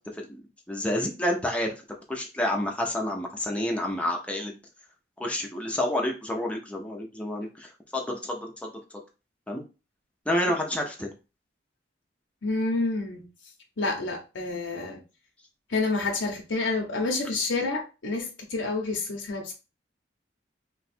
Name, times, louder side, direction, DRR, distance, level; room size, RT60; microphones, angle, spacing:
voice 1, 0.1-1.7 2.1-4.6 5.2-8.8 9.5-9.6 10.3-11.1, left 1 dB, 5° left, 0.7 m, -29 dB
voice 2, 12.4-13.3 13.8-15.0 15.7-19.5, left 3 dB, 80° left, 0.8 m, -28 dB
3.0 x 2.3 x 4.2 m
head